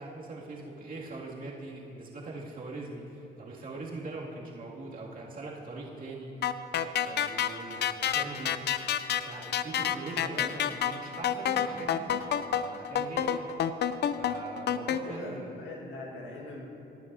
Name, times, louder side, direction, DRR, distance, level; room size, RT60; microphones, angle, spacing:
voice 1, 0.0-6.5 6.8-8.6 9.2-13.5 14.1-15.6, right 2 dB, 45° right, -5 dB, 2.5 m, -42 dB
sound 1, 6.4-15.0, left 9 dB, 60° left, 0.5 m, -29 dB
voice 2, 15.0-16.6, left 2 dB, 75° left, -1 dB, 1.8 m, -41 dB
20.0 x 9.2 x 2.8 m, 2.9 s
supercardioid pair, 75°, 20 cm